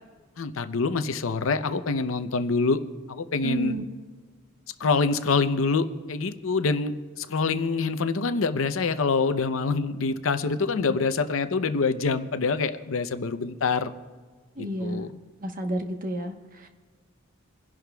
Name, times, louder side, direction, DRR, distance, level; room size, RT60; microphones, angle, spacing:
voice 1, 0.4-2.8 3.1-3.7 4.8-13.9 14.6-15.1, left 4 dB, 70° left, 10 dB, 0.6 m, -26 dB
voice 2, 3.4-3.8 10.7-11.0 14.6-15.1 15.4-16.7, right 1 dB, 45° right, 5 dB, 1.1 m, -31 dB
29.0 x 11.0 x 2.3 m, 1.5 s
head